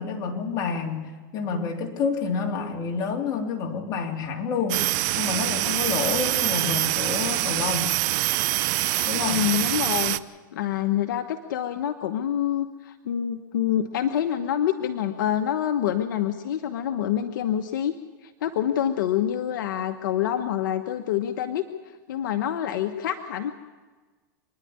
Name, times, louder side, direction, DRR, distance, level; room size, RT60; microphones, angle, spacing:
voice 1, 0.0-8.0 9.1-9.5, left 5 dB, 40° left, 1 dB, 3.6 m, -29 dB
sound 1, 4.7-10.2, right 18 dB, 55° right, 0.8 m, -25 dB
voice 2, 9.2-10.2 10.5-17.9 18.4-21.6 22.1-23.5, left 10 dB, 75° left, 7 dB, 1.2 m, -26 dB
26.0 x 10.5 x 9.7 m, 1.3 s
supercardioid pair, 130°, 11 cm